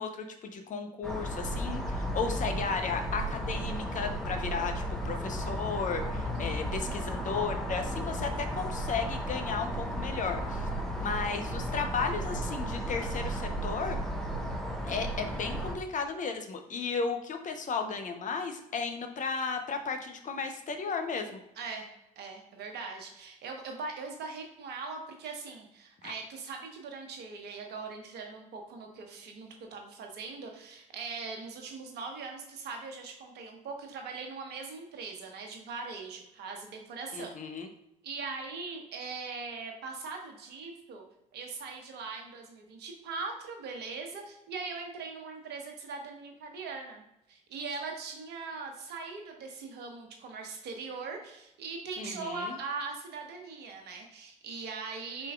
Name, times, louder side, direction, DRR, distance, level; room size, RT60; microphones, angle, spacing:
voice 1, 0.0-10.7 11.0-14.0 14.8-21.3 26.0-26.1 37.1-37.7 52.0-52.6, left 5 dB, 45° left, 5 dB, 0.8 m, -34 dB
sound 1, 1.0-15.7, equal, ahead, 1.0 m, -34 dB
voice 2, 6.3-6.9 21.6-21.9 22.2-37.4 38.0-41.0 41.3-47.0 47.3-55.3, right 4 dB, 60° right, 3 dB, 1.1 m, -41 dB
5.0 x 4.4 x 2.4 m, 0.85 s
hypercardioid pair, 55°, 19 cm